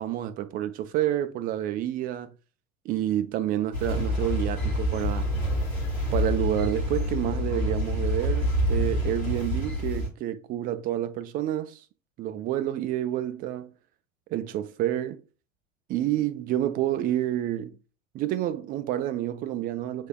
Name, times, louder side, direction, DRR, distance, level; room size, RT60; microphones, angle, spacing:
voice 1, 0.0-2.3 2.8-5.3 6.1-11.8 12.2-13.7 14.3-15.2 15.9-17.8 18.1-20.1, right 12 dB, 25° right, 0.4 m, -29 dB
sound 1, 3.7-10.1, equal, 80° left, 2.2 m, -27 dB
7.2 x 3.2 x 2.2 m
figure-of-eight pair, 75°, 41 cm